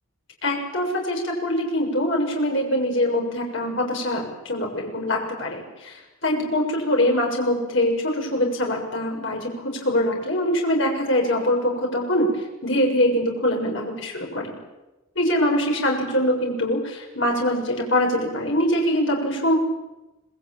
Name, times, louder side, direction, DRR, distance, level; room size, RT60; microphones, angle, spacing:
voice 1, 0.4-12.3 12.6-14.6 15.2-19.6, left 1 dB, 60° left, 1 dB, 7.1 m, -23 dB
26.5 x 21.0 x 9.1 m, 1.0 s
head